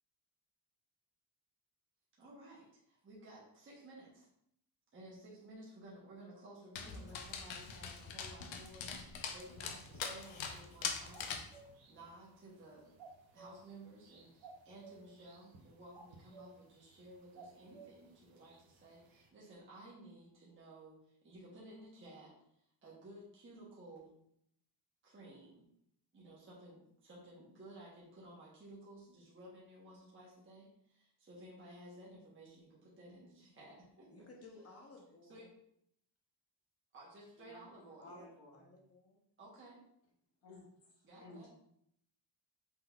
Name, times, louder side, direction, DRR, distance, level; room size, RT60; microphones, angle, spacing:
voice 1, 2.2-4.3 4.9-11.4 11.9-12.9 13.3-22.3 22.8-24.1 25.0-25.7 26.1-34.3 35.3-35.5 36.9-38.1 39.4-39.8 41.0-41.5, right 1 dB, 25° right, -5 dB, 1.1 m, -55 dB
Dog, 6.7-11.5, left 6 dB, 90° left, 0.7 m, -43 dB
sound 1, 9.4-19.3, right 3 dB, 90° right, 0.8 m, -59 dB
voice 2, 34.1-35.5 38.0-39.2 41.2-41.3, left 2 dB, 30° left, 0 dB, 0.8 m, -58 dB
voice 3, 37.4-38.6 40.4-40.6 41.2-41.5, left 2 dB, 70° left, -5 dB, 1.8 m, -54 dB
5.5 x 3.8 x 2.3 m, 0.73 s
wide cardioid pair, 180°, 45 cm